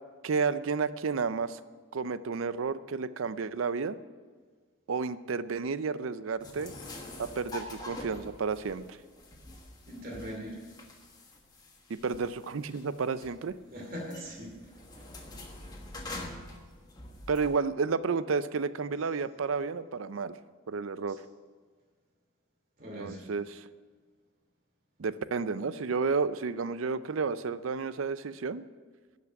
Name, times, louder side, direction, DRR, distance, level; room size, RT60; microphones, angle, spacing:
voice 1, 0.2-1.6 1.9-4.0 4.9-6.7 7.2-8.8 11.9-13.5 17.3-20.3 20.7-21.2 23.0-23.6 25.0-28.6, right 5 dB, 90° right, 15 dB, 0.5 m, -31 dB
sound 1, 6.4-17.6, left 2 dB, 20° left, 1.3 m, -45 dB
voice 2, 9.9-10.6 13.7-14.5 14.9-15.0 21.1-21.2 22.8-23.2, equal, 45° right, -1 dB, 2.7 m, -40 dB
12.0 x 6.0 x 8.9 m, 1.5 s
head